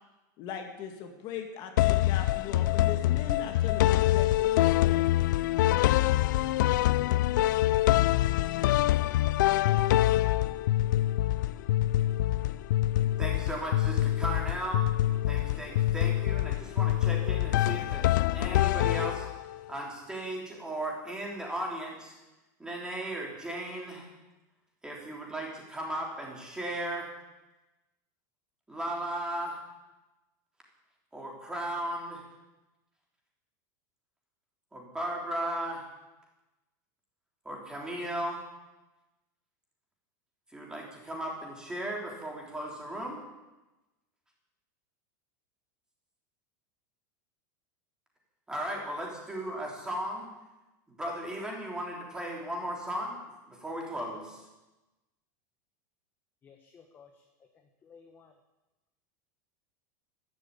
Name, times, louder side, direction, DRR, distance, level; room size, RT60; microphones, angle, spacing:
voice 1, 0.4-5.0, left 7 dB, 45° left, 4 dB, 1.9 m, -39 dB
sound 1, 1.8-19.6, left 14 dB, 80° left, 0.5 m, -25 dB
voice 2, 13.2-14.8 15.3-19.3 19.7-22.1 22.6-24.1 24.8-27.1 28.7-29.6 31.1-32.2 34.7-35.9 37.4-38.4 40.5-43.2 48.5-50.3 50.9-53.2 53.5-54.4, right 1 dB, 5° right, -2 dB, 3.6 m, -36 dB
voice 3, 56.4-57.2 57.8-58.3, left 6 dB, 20° left, 4 dB, 1.2 m, -55 dB
12.5 x 11.5 x 8.6 m, 1.0 s
supercardioid pair, 155°, 10 cm